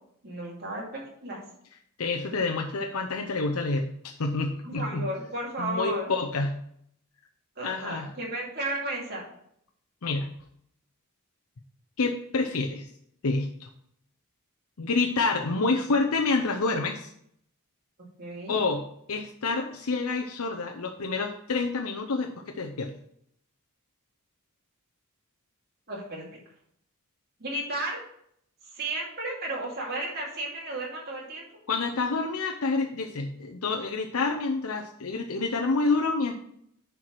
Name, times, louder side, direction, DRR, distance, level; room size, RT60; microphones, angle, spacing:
voice 1, 0.2-1.4 4.6-6.0 7.6-9.2 18.2-18.6 25.9-26.3 27.4-28.0 28.7-31.4, right 1 dB, 45° right, -3 dB, 2.6 m, -33 dB
voice 2, 2.0-5.1 5.6-6.6 7.6-8.1 10.0-10.3 12.0-12.9 13.2-13.7 14.8-17.1 18.5-18.8 19.1-22.9 31.7-36.3, left 3 dB, 75° left, 2 dB, 0.7 m, -28 dB
9.8 x 4.7 x 4.6 m, 0.70 s
head